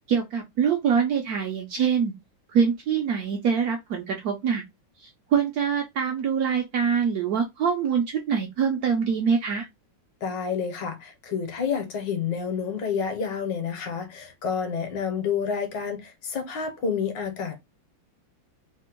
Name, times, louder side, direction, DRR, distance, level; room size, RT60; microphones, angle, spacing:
voice 1, 0.1-2.1 2.5-4.6 5.0-9.7, right 7 dB, 75° right, 0.9 m, -24 dB
voice 2, 10.2-17.6, left 6 dB, 70° left, 1.4 m, -29 dB
3.4 x 2.1 x 2.9 m
omnidirectional pair, 2.1 m